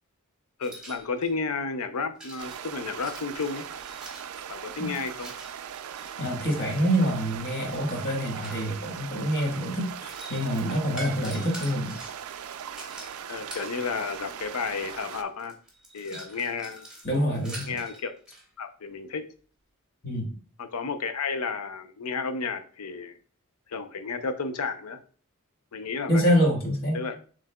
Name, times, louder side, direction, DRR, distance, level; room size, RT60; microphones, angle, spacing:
voice 1, 0.6-3.7 4.5-5.3 13.3-15.6 15.9-16.9 17.7-18.1 18.6-19.3 20.6-23.1 23.7-25.0 25.7-26.2 26.9-27.2, left 4 dB, 90° left, 9 dB, 0.6 m, -32 dB
sound 1, 0.6-1.4 2.2-6.2 7.1-9.0 9.8-13.8 14.7-14.8 15.1-18.5, right 1 dB, 5° right, 1.2 m, -45 dB
sound 2, 2.4-15.2, right 9 dB, 70° right, 0.4 m, -39 dB
voice 2, 6.2-12.0 17.0-17.8 20.0-20.3 26.1-27.0, equal, 45° left, 0 dB, 1.4 m, -26 dB
7.3 x 3.2 x 2.2 m, 0.41 s
head